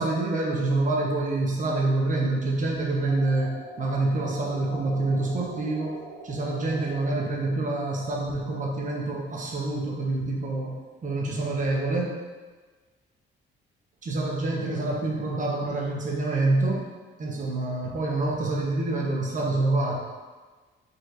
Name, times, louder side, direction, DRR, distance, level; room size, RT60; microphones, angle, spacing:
voice 1, 0.0-6.0 6.2-12.1 14.0-16.8 17.2-19.9, right 2 dB, 40° right, -1 dB, 0.9 m, -27 dB
sound 1, 3.1-7.1, equal, 85° left, 1.3 m, -43 dB
5.1 x 3.0 x 2.6 m, 1.4 s
cardioid pair, 90°, 20 cm